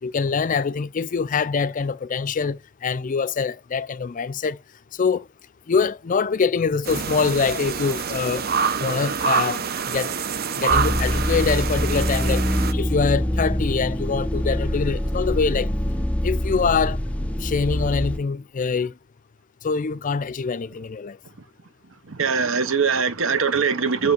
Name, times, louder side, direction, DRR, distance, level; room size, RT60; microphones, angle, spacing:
voice 1, 0.0-4.6 4.9-5.3 5.7-8.5 8.8-10.1 10.5-15.7 16.2-17.0 17.4-18.9 19.6-21.2, left 5 dB, 40° left, 0.4 m, -24 dB
sound 1, 6.8-12.7, right 6 dB, 50° right, 0.7 m, -26 dB
sound 2, 10.7-18.2, equal, 5° left, 0.7 m, -24 dB
voice 2, 22.1-24.1, right 5 dB, 85° right, 1.0 m, -22 dB
6.7 x 5.5 x 5.2 m
head